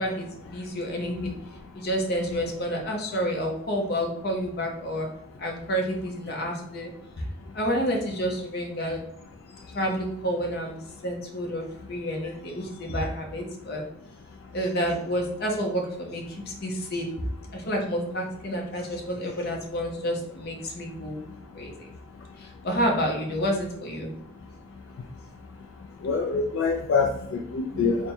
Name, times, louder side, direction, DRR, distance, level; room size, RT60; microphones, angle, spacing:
voice 1, 0.0-1.4 1.7-5.1 5.4-6.9 7.2-7.3 7.5-9.0 9.6-10.8 11.0-13.8 14.5-17.2 17.5-21.2 21.5-21.9 22.4-24.1, equal, 50° left, 1 dB, 0.7 m, -29 dB
voice 2, 26.0-28.1, left 4 dB, 70° left, 3 dB, 0.3 m, -26 dB
3.4 x 2.1 x 4.2 m, 0.75 s
head